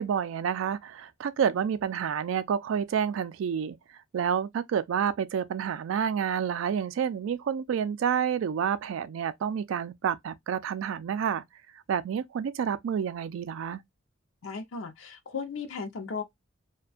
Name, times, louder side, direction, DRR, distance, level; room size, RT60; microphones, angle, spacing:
voice 1, 0.0-3.8 4.1-11.4 11.9-13.8, right 7 dB, 75° right, 0.3 m, -29 dB
voice 2, 14.4-16.2, left 5 dB, 80° left, 0.5 m, -36 dB
2.5 x 2.2 x 2.3 m
head